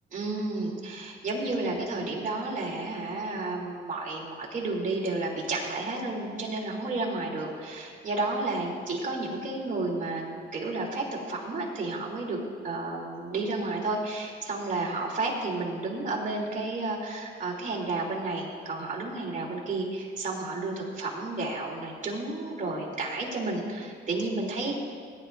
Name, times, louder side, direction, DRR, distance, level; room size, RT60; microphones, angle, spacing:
voice 1, 0.1-12.4 12.6-24.8, right 2 dB, 40° right, -3 dB, 3.2 m, -31 dB
19.0 x 10.5 x 2.6 m, 2.1 s
cardioid pair, 90°, 20 cm